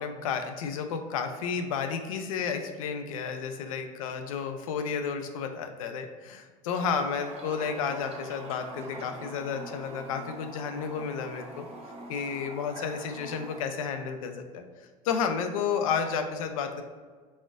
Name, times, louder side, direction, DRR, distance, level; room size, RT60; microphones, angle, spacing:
voice 1, 0.0-11.7 12.1-14.6 15.0-16.8, left 6 dB, 85° left, 7 dB, 0.4 m, -32 dB
Toilet flush, 6.7-13.6, right 2 dB, 35° right, 0.8 m, -44 dB
4.1 x 3.7 x 2.4 m, 1.5 s
hypercardioid pair, 85°, 17 cm